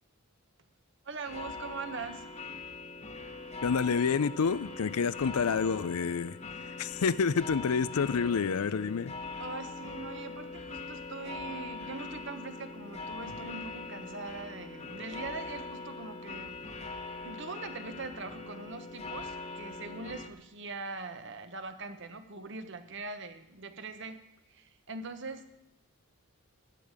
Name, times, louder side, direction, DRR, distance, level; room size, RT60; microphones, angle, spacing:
voice 1, 1.0-2.2 9.4-16.6 17.2-24.2 24.5-25.4, right 3 dB, 55° right, 9 dB, 1.2 m, -42 dB
sound 1, 1.2-20.3, left 3 dB, 30° left, 1.1 m, -42 dB
voice 2, 3.6-6.4 6.8-9.1, left 5 dB, 85° left, 17 dB, 0.5 m, -28 dB
15.0 x 10.5 x 5.0 m, 0.86 s
head